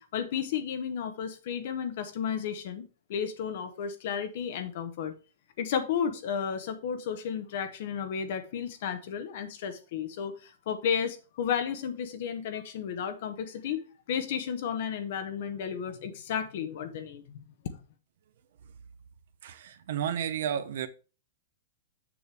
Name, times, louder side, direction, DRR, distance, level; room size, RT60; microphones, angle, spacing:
voice 1, 0.0-5.1 5.6-17.4, left 7 dB, 50° left, 0.9 m, -33 dB
voice 2, 19.4-20.9, right 9 dB, 65° right, 0.8 m, -32 dB
7.1 x 6.5 x 3.3 m
supercardioid pair, 175°, 0 cm